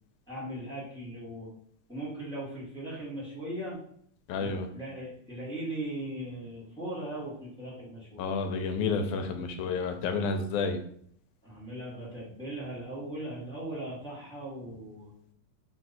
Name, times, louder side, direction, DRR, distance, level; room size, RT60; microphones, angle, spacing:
voice 1, 0.3-1.5 1.9-3.8 4.4-8.4 11.4-15.1, right 1 dB, 5° left, -9 dB, 0.5 m, -39 dB
voice 2, 4.3-4.7 8.2-10.8, left 4 dB, 85° left, 6 dB, 2.0 m, -30 dB
4.8 x 2.3 x 4.1 m, 0.64 s
omnidirectional pair, 3.5 m